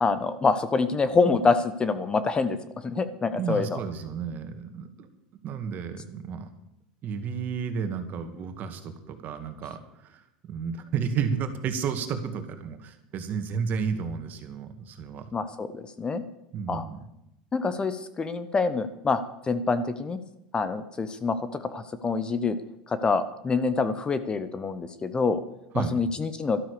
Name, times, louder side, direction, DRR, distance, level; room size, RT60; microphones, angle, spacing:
voice 1, 0.0-2.6 2.8-3.8 15.3-16.2 16.7-16.8 17.5-20.2 20.5-22.6 22.9-25.4 25.7-26.6, left 4 dB, 20° left, 12 dB, 1.0 m, -26 dB
voice 2, 3.3-5.1 5.4-6.5 7.0-10.2 10.5-15.2 16.5-17.0 25.7-26.0, right 6 dB, 40° right, 7 dB, 2.2 m, -32 dB
12.5 x 12.5 x 6.8 m, 0.84 s
supercardioid pair, 115°, 4 cm